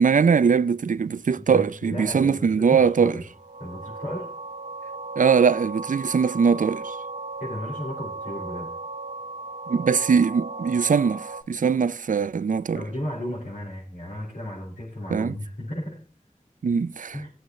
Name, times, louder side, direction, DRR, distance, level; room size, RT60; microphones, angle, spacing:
voice 1, 0.0-3.2 5.2-7.0 9.7-12.8 15.1-15.4 16.6-17.2, right 6 dB, 80° right, 0.4 m, -21 dB
voice 2, 1.4-3.2 3.6-4.3 7.4-8.7 12.7-16.0 17.1-17.3, left 1 dB, 80° left, 4.9 m, -34 dB
sound 1, 3.3-11.4, right 3 dB, 65° right, 1.6 m, -36 dB
19.0 x 7.8 x 3.1 m
wide cardioid pair, 60°, 13 cm